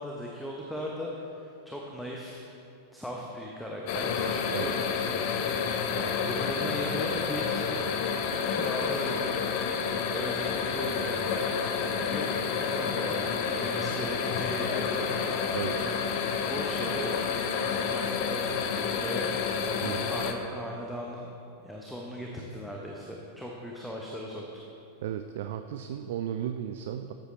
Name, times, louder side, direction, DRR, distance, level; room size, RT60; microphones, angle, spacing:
voice 1, 0.0-2.5 2.9-4.8 5.4-7.8 8.5-9.6 10.1-11.6 12.0-15.5 15.8-17.2 17.9-19.3 20.0-21.3 21.6-24.6, equal, ahead, -2 dB, 0.9 m, -38 dB
sound 1, 3.9-20.3, left 6 dB, 45° left, 0.7 m, -29 dB
voice 2, 19.8-20.1 25.0-27.1, right 10 dB, 55° right, 8 dB, 0.3 m, -35 dB
13.0 x 8.1 x 3.2 m, 2.8 s
figure-of-eight pair, 90°, 0 cm